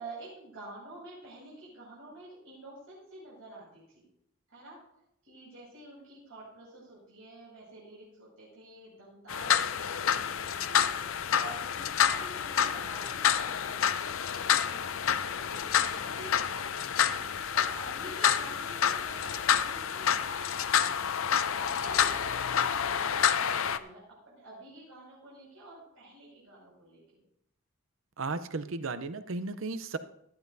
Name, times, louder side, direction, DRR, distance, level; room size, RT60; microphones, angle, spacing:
voice 1, 0.0-4.0 4.5-4.8 5.2-27.2, right 2 dB, 85° right, -7 dB, 5.9 m, -49 dB
sound 1, 9.3-23.8, left 8 dB, 75° left, 0.6 m, -28 dB
voice 2, 28.2-30.0, right 3 dB, 70° right, 12 dB, 0.7 m, -35 dB
16.5 x 13.0 x 2.7 m, 0.73 s
head